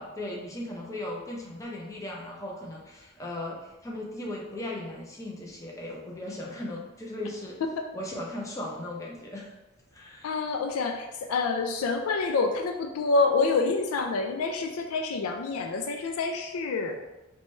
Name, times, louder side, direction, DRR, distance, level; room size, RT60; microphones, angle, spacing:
voice 1, 0.0-7.6 7.9-9.5 9.9-10.4, left 1 dB, 15° left, -2 dB, 0.5 m, -37 dB
voice 2, 10.2-17.0, left 3 dB, 90° left, 4 dB, 0.4 m, -27 dB
4.3 x 2.2 x 3.1 m, 1.0 s
head